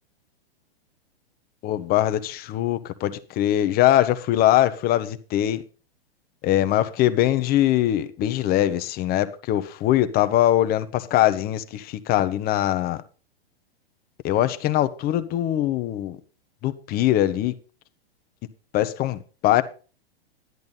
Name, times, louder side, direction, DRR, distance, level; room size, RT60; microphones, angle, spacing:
voice 1, 1.6-5.6 6.4-13.0 14.2-16.2 16.6-17.5 18.7-19.6, left 13 dB, 30° left, 0.9 m, -22 dB
11.0 x 10.5 x 4.1 m
hypercardioid pair, 120°, 31 cm